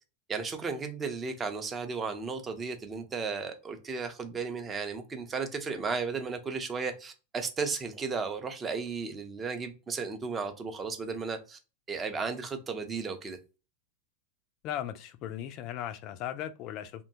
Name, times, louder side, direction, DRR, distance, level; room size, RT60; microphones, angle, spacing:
voice 1, 0.3-11.6 11.9-13.4, right 4 dB, 20° right, 0.5 m, -34 dB
voice 2, 14.6-17.0, left 11 dB, 40° left, 0.3 m, -37 dB
2.7 x 2.2 x 2.6 m
figure-of-eight pair, 90°, 0 cm